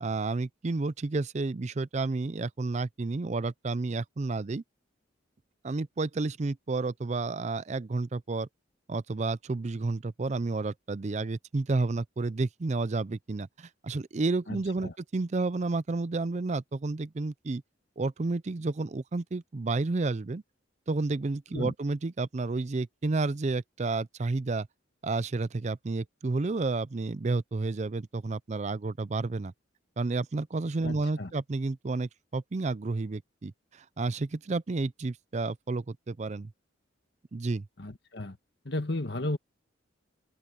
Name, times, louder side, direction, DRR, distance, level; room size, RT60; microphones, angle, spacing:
voice 1, 0.0-4.6 5.6-8.5 8.9-17.6 18.0-20.4 20.9-24.7 25.0-29.5 30.0-36.5 37.3-37.7, right 3 dB, 35° right, 0.4 m, -31 dB
voice 2, 14.5-14.9 21.5-21.7 30.8-31.3 37.8-38.4 38.6-39.4, left 2 dB, 55° left, 1.6 m, -34 dB
head